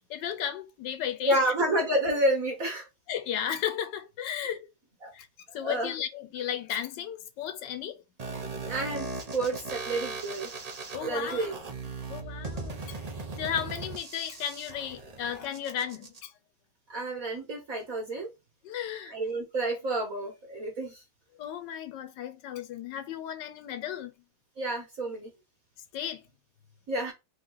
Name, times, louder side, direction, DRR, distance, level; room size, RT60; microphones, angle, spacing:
voice 1, 0.1-1.8 3.1-4.7 5.1-5.3 5.5-8.0 10.9-11.5 12.1-16.3 18.6-19.2 21.4-24.1 25.9-26.2, left 9 dB, 85° left, 1.4 m, -34 dB
voice 2, 1.2-2.9 5.0-5.1 5.6-5.9 8.6-9.1 9.3-10.5 11.0-11.6 16.9-18.3 19.1-21.0 24.6-25.3 26.9-27.1, right 1 dB, 55° right, 1.6 m, -29 dB
sound 1, 8.2-16.2, right 3 dB, 30° right, 0.7 m, -38 dB
4.1 x 3.1 x 3.8 m
omnidirectional pair, 1.9 m